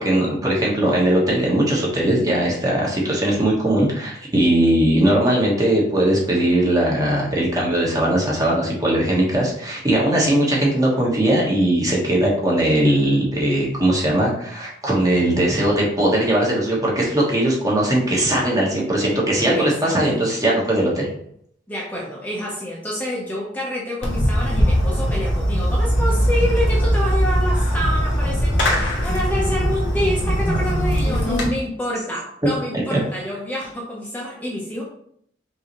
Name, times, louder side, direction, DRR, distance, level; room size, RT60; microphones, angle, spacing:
voice 1, 0.0-21.1 32.9-33.0, right 1 dB, 20° right, -3 dB, 1.2 m, -19 dB
voice 2, 19.5-19.9 21.7-34.8, equal, 10° left, -4 dB, 0.7 m, -27 dB
Fireworks, 24.0-31.5, equal, 75° left, 1.3 m, -20 dB
5.5 x 2.8 x 3.0 m, 0.67 s
head